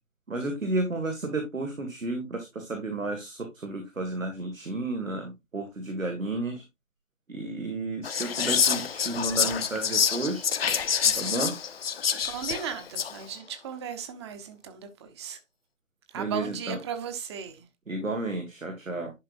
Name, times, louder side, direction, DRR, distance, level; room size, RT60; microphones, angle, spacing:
voice 1, 0.3-6.6 7.3-10.5 11.0-11.5 16.1-16.8 17.9-19.1, right 2 dB, 85° right, 2.0 m, -32 dB
Whispering, 8.0-13.2, left 7 dB, 50° left, 0.9 m, -27 dB
voice 2, 12.2-15.4 16.1-17.7, right 7 dB, 20° right, 0.9 m, -36 dB
11.0 x 5.2 x 2.5 m
figure-of-eight pair, 140°, 38 cm